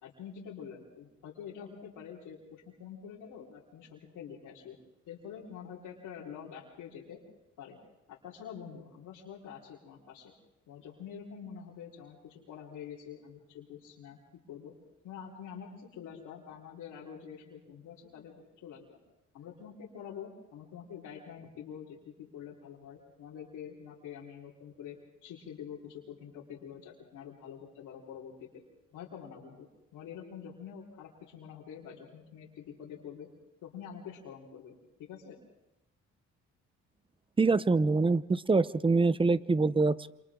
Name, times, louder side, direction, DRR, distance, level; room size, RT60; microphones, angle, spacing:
voice 1, 0.0-4.8 5.1-7.2 7.6-7.8 8.1-10.3 10.7-14.2 14.5-14.7 15.0-18.3 18.6-19.0 19.3-28.6 28.9-33.3 33.6-35.4, left 8 dB, 90° left, -8 dB, 4.2 m, -46 dB
voice 2, 37.4-40.1, right 3 dB, 15° right, 17 dB, 0.7 m, -25 dB
28.0 x 28.0 x 3.8 m, 0.92 s
cardioid pair, 90°, 30 cm